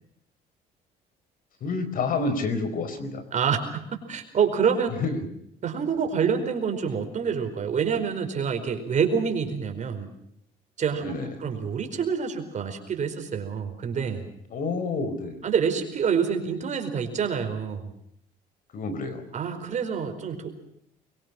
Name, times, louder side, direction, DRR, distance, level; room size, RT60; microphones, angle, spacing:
voice 1, 1.6-3.2 5.0-5.2 11.0-11.3 14.5-15.4 18.7-19.2, left 3 dB, 55° left, 11 dB, 4.6 m, -29 dB
voice 2, 3.3-4.9 5.6-10.1 10.8-11.1 11.4-14.3 15.4-17.9 19.3-20.6, right 6 dB, 45° right, 6 dB, 4.7 m, -27 dB
24.0 x 22.5 x 6.1 m, 0.72 s
cardioid pair, 110°, 17 cm